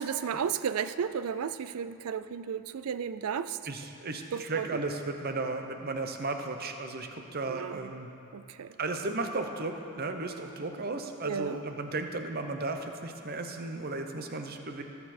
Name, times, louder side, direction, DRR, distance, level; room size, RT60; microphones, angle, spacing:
voice 1, 0.0-3.6 4.3-4.7 7.5-7.9 8.3-8.8 11.2-11.6, right 7 dB, 80° right, 13 dB, 0.4 m, -33 dB
voice 2, 3.7-8.1 8.8-14.8, right 3 dB, 45° right, 5 dB, 0.8 m, -35 dB
19.0 x 6.9 x 4.3 m, 2.9 s
head